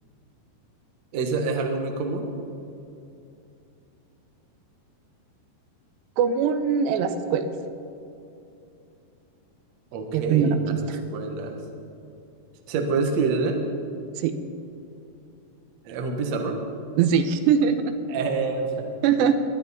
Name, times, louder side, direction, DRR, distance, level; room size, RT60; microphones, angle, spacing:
voice 1, 1.1-2.3 9.9-11.6 12.7-13.6 15.8-16.6 18.1-18.9, right 4 dB, 65° right, 3 dB, 1.7 m, -27 dB
voice 2, 6.2-7.5 10.1-11.0 14.2-14.3 17.0-17.9 19.0-19.4, right 7 dB, 90° right, 9 dB, 2.9 m, -22 dB
22.0 x 9.5 x 4.1 m, 2.7 s
omnidirectional pair, 4.9 m